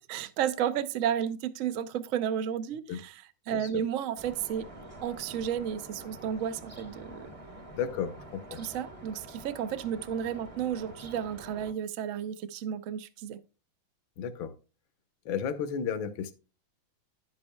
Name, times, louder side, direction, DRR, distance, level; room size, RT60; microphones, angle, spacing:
voice 1, 0.1-4.7 5.0-7.3 8.5-13.4, right 9 dB, 70° right, 0.7 m, -32 dB
sound 1, 4.2-11.7, right 1 dB, 25° right, 0.8 m, -47 dB
voice 2, 7.7-8.6 14.2-14.5 15.3-16.3, left 7 dB, 75° left, 1.7 m, -33 dB
11.0 x 8.5 x 2.2 m
omnidirectional pair, 2.2 m